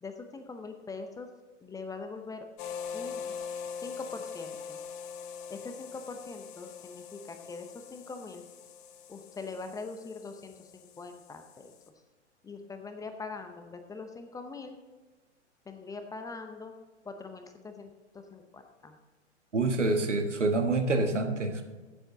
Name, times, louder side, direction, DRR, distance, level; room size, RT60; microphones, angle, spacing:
voice 1, 0.0-1.3 1.6-2.4 2.9-3.3 3.8-4.8 5.5-8.4 9.1-11.7 12.4-14.8 15.7-16.7 17.0-19.0, left 4 dB, 10° left, 6 dB, 0.8 m, -42 dB
sound 1, 2.6-11.9, left 6 dB, 45° left, 1.0 m, -43 dB
voice 2, 19.5-21.6, right 2 dB, 80° right, 6 dB, 1.6 m, -27 dB
15.0 x 7.7 x 3.8 m, 1.3 s
figure-of-eight pair, 105°, 36 cm